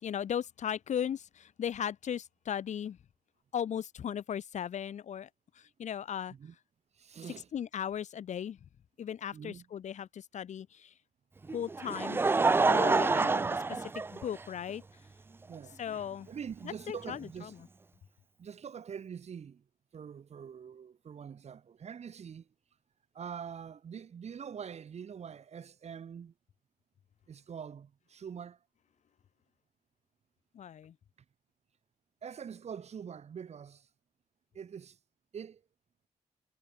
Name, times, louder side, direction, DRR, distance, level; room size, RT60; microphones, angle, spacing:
voice 1, 0.0-3.0 3.5-5.3 5.5-6.3 7.5-8.6 9.0-10.9 11.5-12.2 12.7-13.4 13.8-14.8 15.8-16.3 16.6-17.6 30.5-31.0, left 9 dB, 60° left, 1.0 m, -37 dB
voice 2, 6.9-7.5 9.3-9.6 13.0-13.7 15.5-15.8 16.3-17.5 18.4-19.6 19.9-22.5 23.1-26.3 27.3-28.6 32.2-33.9 34.5-35.0 35.3-35.6, right 7 dB, 55° right, 2.0 m, -44 dB
Laughter, 11.5-14.7 15.5-15.6 17.1-17.2, right 3 dB, 15° right, 0.3 m, -27 dB
cardioid pair, 90°, 13 cm